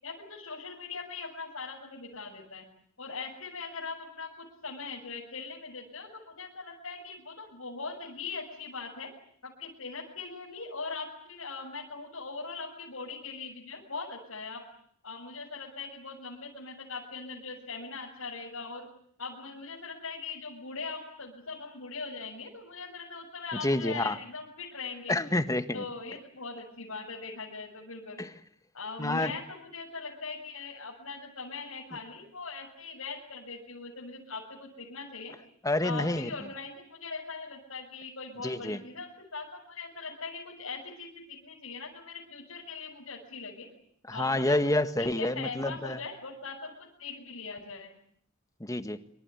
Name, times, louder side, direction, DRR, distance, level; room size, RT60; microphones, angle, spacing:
voice 1, 0.0-2.6 3.0-9.1 9.4-14.6 15.0-18.9 19.2-25.2 25.7-28.2 28.7-35.3 35.8-43.7 44.1-44.6 45.0-48.0, left 4 dB, 70° left, -3 dB, 7.1 m, -40 dB
voice 2, 23.6-24.2 25.1-25.8 28.2-28.3 29.0-29.3 35.6-36.3 38.4-38.8 44.1-46.0 48.6-49.0, left 1 dB, 15° left, 10 dB, 1.6 m, -28 dB
27.5 x 25.5 x 8.4 m, 0.65 s
head